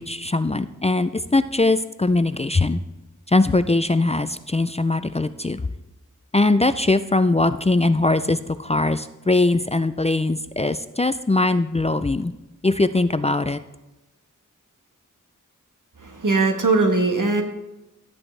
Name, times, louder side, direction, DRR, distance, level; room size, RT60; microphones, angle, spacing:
voice 1, 0.0-2.8 3.3-5.6 6.3-12.3 12.6-13.6, left 2 dB, 20° left, 12 dB, 0.4 m, -21 dB
voice 2, 16.0-17.4, right 3 dB, 75° right, 4 dB, 1.3 m, -20 dB
12.0 x 8.6 x 3.3 m, 1.0 s
wide cardioid pair, 55°, 32 cm